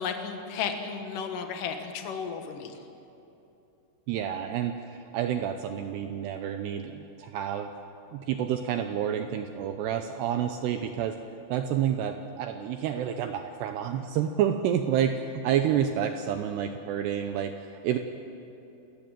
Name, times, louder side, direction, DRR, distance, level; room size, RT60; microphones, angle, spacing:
voice 1, 0.0-2.8, left 6 dB, 60° left, 6 dB, 2.4 m, -33 dB
voice 2, 4.1-7.7 8.1-11.2 11.5-18.0, right 9 dB, 80° right, 6 dB, 2.5 m, -29 dB
28.5 x 14.0 x 7.7 m, 2.9 s
omnidirectional pair, 5.6 m